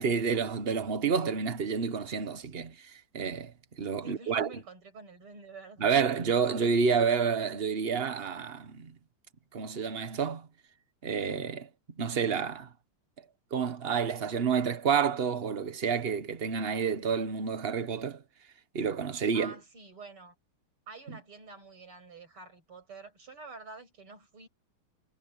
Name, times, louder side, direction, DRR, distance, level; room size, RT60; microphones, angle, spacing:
voice 1, 0.0-3.5 3.8-4.5 5.8-8.9 9.5-10.5 11.0-11.7 12.0-12.7 13.5-18.2 18.7-19.5, right 6 dB, 35° right, 1.1 m, -29 dB
voice 2, 4.0-5.9 19.3-20.4 20.9-24.5, right 3 dB, 75° right, 7.3 m, -48 dB
omnidirectional pair, 2.4 m